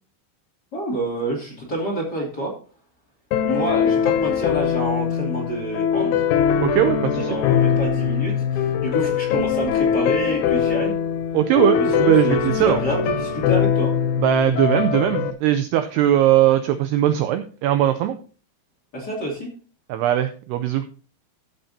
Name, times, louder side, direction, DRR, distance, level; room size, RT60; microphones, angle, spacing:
voice 1, 0.7-2.5 3.4-6.1 7.3-10.9 11.8-13.9 18.9-19.5, right 1 dB, 25° left, -2 dB, 2.5 m, -28 dB
sound 1, 3.3-15.3, left 8 dB, 90° left, 3.4 m, -22 dB
voice 2, 6.6-7.3 11.3-12.8 14.2-18.2 19.9-20.9, right 11 dB, 85° right, 9 dB, 2.3 m, -19 dB
14.0 x 8.0 x 2.8 m, 0.37 s
omnidirectional pair, 5.4 m